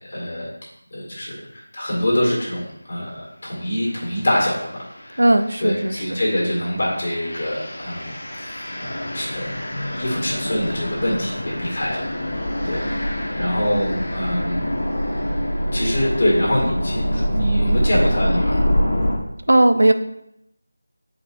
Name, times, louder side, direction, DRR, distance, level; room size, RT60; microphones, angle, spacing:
voice 1, 0.0-0.5 0.9-4.8 5.0-5.2 5.6-8.2 8.8-9.5 10.0-14.7 15.7-18.6, equal, 50° left, -5 dB, 2.0 m, -24 dB
sound 1, 3.9-4.2 4.7-19.2, equal, 70° left, 1.3 m, -25 dB
voice 2, 5.2-6.2 19.5-19.9, right 1 dB, 85° right, 8 dB, 0.6 m, -16 dB
Telephone, 10.3-11.0 12.2-12.9 14.1-14.9 16.1-16.6, left 2 dB, 5° right, 1.8 m, -41 dB
7.0 x 5.1 x 2.6 m, 0.80 s
figure-of-eight pair, 175°, 0 cm